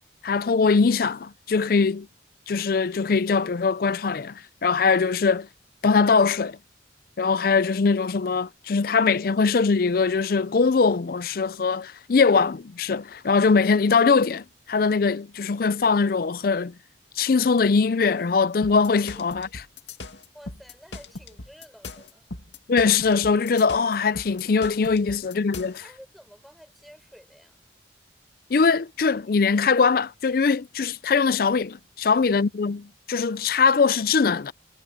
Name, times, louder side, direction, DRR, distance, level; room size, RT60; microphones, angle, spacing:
voice 1, 0.2-2.1 2.5-5.5 5.8-6.6 7.2-16.7 17.2-19.5 22.7-25.8 28.5-34.5, left 5 dB, 55° left, 0.5 m, -22 dB
sound 1, 18.6-25.8, left 3 dB, 80° left, 2.2 m, -39 dB
voice 2, 20.3-22.4 25.1-25.3 25.8-27.6 32.1-32.4, equal, ahead, 5.0 m, -51 dB
head